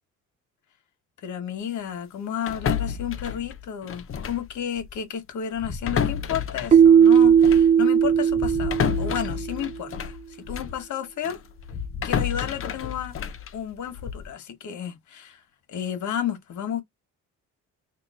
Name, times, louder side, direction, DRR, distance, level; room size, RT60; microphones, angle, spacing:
voice 1, 1.2-11.4 12.0-13.1 13.5-15.4 15.7-16.8, left 9 dB, 70° left, 1.3 m, -32 dB
sound 1, 2.5-4.5 4.8-5.0 5.6-10.8 11.2-14.3, left 7 dB, 45° left, 0.7 m, -30 dB
Keyboard (musical), 6.7-9.5, right 8 dB, 25° right, 0.3 m, -17 dB
3.0 x 2.7 x 4.2 m
cardioid pair, 90°, 30 cm